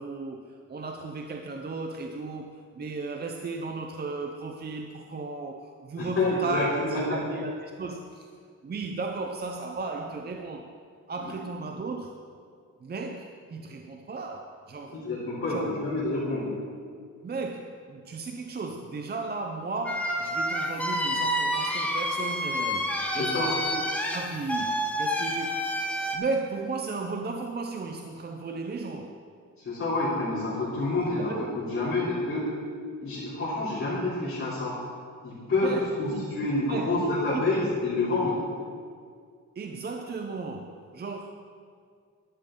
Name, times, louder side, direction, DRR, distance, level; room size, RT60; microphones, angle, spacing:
voice 1, 0.0-8.3 8.6-10.7 11.1-12.2 12.8-15.0 15.5-15.7 17.2-23.8 24.1-25.6 26.1-29.2 31.2-31.5 35.6-37.1 37.3-37.4 39.6-41.4, right 3 dB, 30° right, 3 dB, 0.6 m, -35 dB
voice 2, 6.0-7.2 11.2-11.3 14.9-16.5 23.1-23.5 29.6-32.5 33.0-34.7 35.2-38.4, left 2 dB, 45° left, -12 dB, 3.3 m, -28 dB
sound 1, 19.9-26.2, equal, 5° left, 1.0 m, -29 dB
12.5 x 12.0 x 3.8 m, 2.1 s
wide cardioid pair, 165°, 31 cm